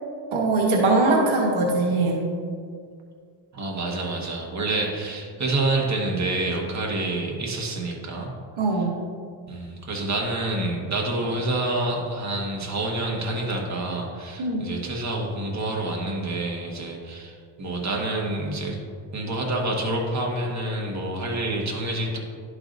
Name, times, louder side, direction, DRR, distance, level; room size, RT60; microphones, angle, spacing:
voice 1, 0.3-2.2 8.6-9.0 14.4-14.6, right 2 dB, 70° right, -1 dB, 1.2 m, -21 dB
voice 2, 3.5-8.3 9.5-18.8 19.1-22.2, right 2 dB, 35° right, -1 dB, 1.6 m, -27 dB
11.5 x 4.9 x 2.6 m, 2.1 s
cardioid pair, 70°, 50 cm